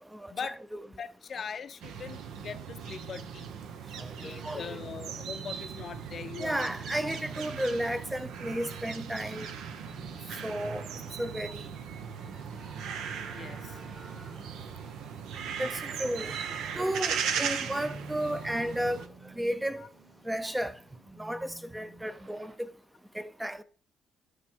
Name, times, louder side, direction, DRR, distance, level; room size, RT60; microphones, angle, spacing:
voice 1, 0.1-0.8 4.0-4.8 6.4-9.5 10.4-10.9 11.2-11.6 15.6-16.3 16.7-19.1 19.4-19.8 20.3-20.7 21.2-22.5 23.1-23.6, right 1 dB, 10° right, 0.5 m, -33 dB
voice 2, 0.9-3.5 4.2-6.7 7.0-7.1 13.3-13.8 18.5-18.7 19.8-19.9, left 6 dB, 50° left, 0.5 m, -41 dB
sound 1, 1.8-19.1, right 7 dB, 85° right, 0.8 m, -38 dB
sound 2, 5.2-22.6, right 2 dB, 30° right, 1.6 m, -51 dB
9.6 x 3.3 x 4.5 m
cardioid pair, 90°, 0 cm